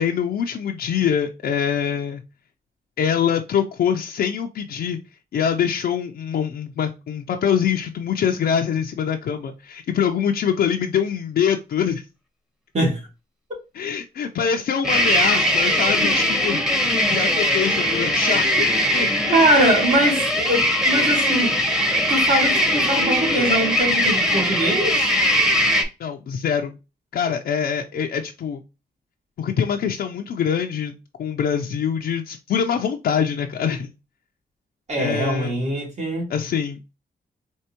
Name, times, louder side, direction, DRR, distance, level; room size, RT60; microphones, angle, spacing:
voice 1, 0.0-2.2 3.0-5.0 5.3-12.0 13.7-19.3 26.0-26.8 27.1-28.6 29.4-30.9 31.2-33.9 35.0-35.5 36.3-36.9, left 8 dB, 80° left, 0.5 m, -24 dB
sound 1, 14.8-25.8, equal, 5° right, 1.0 m, -20 dB
voice 2, 19.3-21.6 22.1-25.1 34.9-36.3, right 1 dB, 45° right, 2.3 m, -22 dB
4.5 x 2.9 x 2.9 m
cardioid pair, 95°, 16 cm